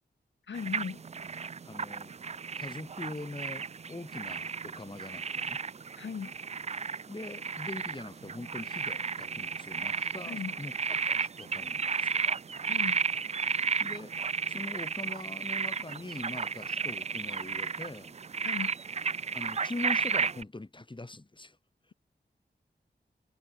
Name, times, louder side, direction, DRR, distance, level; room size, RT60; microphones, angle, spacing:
voice 1, 0.5-1.0 6.0-6.3 10.3-10.6 12.7-13.0 18.4-18.7, left 6 dB, 85° left, 1.5 m, -37 dB
sound 1, 0.5-20.4, right 5 dB, 35° right, 0.4 m, -33 dB
voice 2, 1.6-2.1 2.6-5.6 7.1-12.4 13.8-14.1 14.5-18.2 19.3-21.6, left 2 dB, 25° left, 5.0 m, -42 dB
wide cardioid pair, 100°, 18 cm